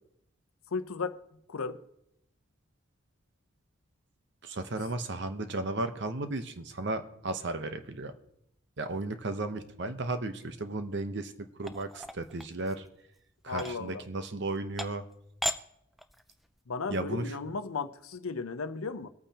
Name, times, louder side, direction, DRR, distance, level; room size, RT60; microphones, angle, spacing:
voice 1, 0.7-1.2 1.5-1.8 13.5-14.0 16.7-19.1, left 4 dB, 85° left, 11 dB, 0.7 m, -35 dB
voice 2, 4.4-8.1 8.8-12.9 13.4-15.1 16.9-17.3, right 2 dB, 55° right, 9 dB, 0.8 m, -34 dB
sound 1, 11.6-12.9 13.5-13.7 14.4-14.5 14.8-15.1 15.4-15.6 16.0-16.4, left 1 dB, ahead, 0.3 m, -36 dB
22.0 x 8.7 x 2.9 m, 0.78 s
head